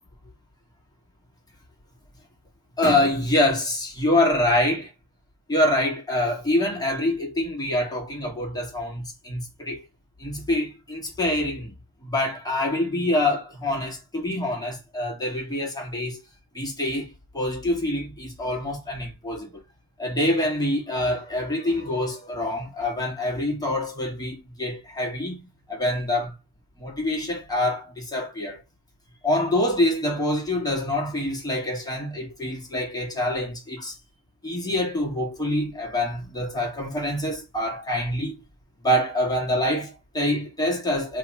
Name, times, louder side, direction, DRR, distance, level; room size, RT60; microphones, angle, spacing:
voice 1, 2.8-4.9 5.5-9.8 10.2-11.7 12.0-16.2 16.5-19.6 20.0-25.4 25.7-26.3 26.8-28.6 29.2-34.0 34.4-38.3 38.8-41.2, left 1 dB, 10° left, 1.2 m, -25 dB
2.9 x 2.4 x 3.9 m
cardioid pair, 125°, 43 cm